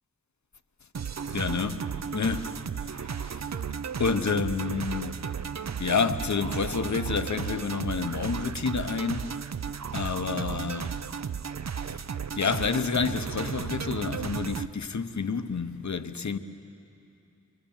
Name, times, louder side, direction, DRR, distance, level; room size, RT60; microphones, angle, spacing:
sound 1, 0.9-14.7, right 7 dB, 60° right, 0.6 m, -34 dB
voice 1, 1.3-3.5 4.0-5.2 5.6-9.4 9.9-11.0 11.9-12.0 12.4-16.4, left 5 dB, 65° left, 0.9 m, -29 dB
26.0 x 23.0 x 7.2 m
wide cardioid pair, 50°, 31 cm